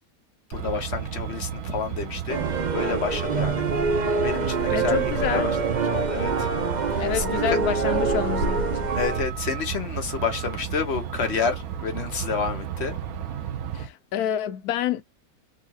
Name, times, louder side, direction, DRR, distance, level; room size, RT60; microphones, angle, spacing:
voice 1, 0.5-3.6 4.2-5.0 5.3-5.5 5.8-6.5 6.8-7.2 9.0-12.9, left 5 dB, 50° left, 1.0 m, -29 dB
Truck, 0.5-13.9, right 6 dB, 75° right, 1.1 m, -32 dB
sound 1, 2.3-9.2, right 4 dB, 45° right, 0.6 m, -26 dB
voice 2, 4.7-5.5 7.0-8.9 13.7-15.0, left 10 dB, 90° left, 1.1 m, -28 dB
3.8 x 2.3 x 2.7 m
omnidirectional pair, 1.6 m